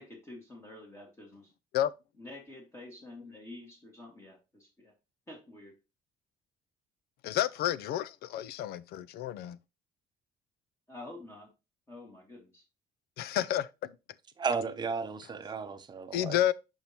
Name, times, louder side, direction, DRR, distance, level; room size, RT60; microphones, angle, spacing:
voice 1, 0.0-1.5 2.2-4.9 5.3-5.8 10.9-11.5 11.9-12.6, left 2 dB, 15° left, 2.2 m, -48 dB
voice 2, 7.2-9.6 13.2-13.9 16.1-16.5, left 12 dB, 75° left, 0.5 m, -30 dB
voice 3, 14.4-16.4, right 5 dB, 25° right, 0.8 m, -34 dB
6.9 x 5.5 x 3.0 m
cardioid pair, 140°, 16 cm